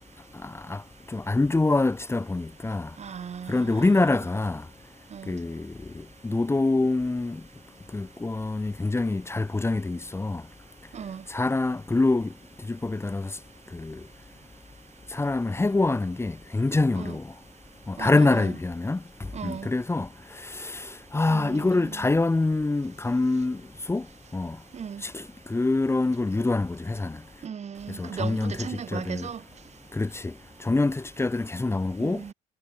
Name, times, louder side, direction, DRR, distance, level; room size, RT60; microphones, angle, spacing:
voice 1, 0.4-0.8 1.1-2.9 3.5-4.6 5.3-5.7 6.2-7.4 7.9-10.4 11.3-12.3 12.7-13.3 13.7-14.0 15.1-17.2 17.9-19.0 19.4-20.1 20.5-23.6 23.9-24.0 24.3-24.6 25.0-25.2 25.5-27.2 28.0-29.3 29.9-30.3 30.6-32.2, left 2 dB, 15° left, 3.4 m, -25 dB
voice 2, 3.0-4.2 5.1-5.3 10.9-11.2 16.9-17.2 18.0-18.5 19.3-19.7 21.3-22.1 24.7-25.0 27.4-29.4 32.0-32.3, right 7 dB, 40° right, 6.5 m, -37 dB
cardioid pair, 110°, 17 cm